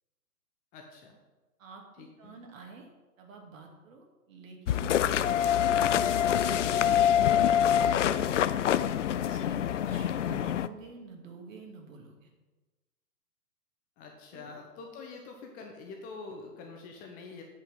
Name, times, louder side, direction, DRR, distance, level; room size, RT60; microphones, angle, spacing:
voice 1, 0.7-1.2 2.0-2.4 7.6-7.9 14.0-17.4, left 4 dB, 15° left, 2 dB, 0.8 m, -45 dB
voice 2, 1.6-2.9 3.2-5.0 5.3-8.7 9.2-12.3 14.3-14.5, right 3 dB, 50° right, 2 dB, 2.5 m, -48 dB
sound 1, 4.7-10.7, left 10 dB, 50° left, 0.5 m, -25 dB
8.5 x 5.6 x 7.3 m, 1.2 s
hypercardioid pair, 135°, 48 cm